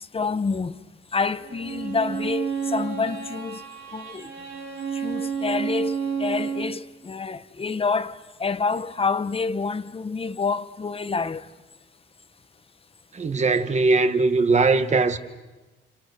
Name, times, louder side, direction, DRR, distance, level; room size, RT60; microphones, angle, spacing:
voice 1, 0.1-0.7 1.1-3.6 3.9-4.3 4.9-11.5, left 4 dB, 30° left, 1.3 m, -27 dB
Bowed string instrument, 1.4-6.8, right 6 dB, 75° right, 3.6 m, -30 dB
voice 2, 13.1-15.2, right 3 dB, 35° right, 2.0 m, -20 dB
30.0 x 29.5 x 6.8 m
cardioid pair, 90°, 20 cm